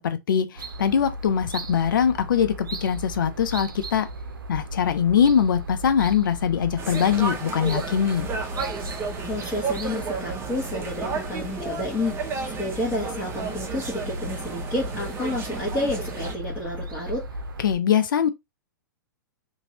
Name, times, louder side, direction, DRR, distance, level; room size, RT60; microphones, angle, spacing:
voice 1, 0.0-4.1 4.5-8.3 17.6-18.3, left 8 dB, 70° left, 0.5 m, -22 dB
sound 1, 0.6-17.8, right 1 dB, 85° right, 0.5 m, -36 dB
sound 2, 6.8-16.3, right 4 dB, 20° right, 0.8 m, -33 dB
voice 2, 9.2-17.2, left 2 dB, 20° left, 1.4 m, -30 dB
2.9 x 2.7 x 2.8 m
hypercardioid pair, 110°, 11 cm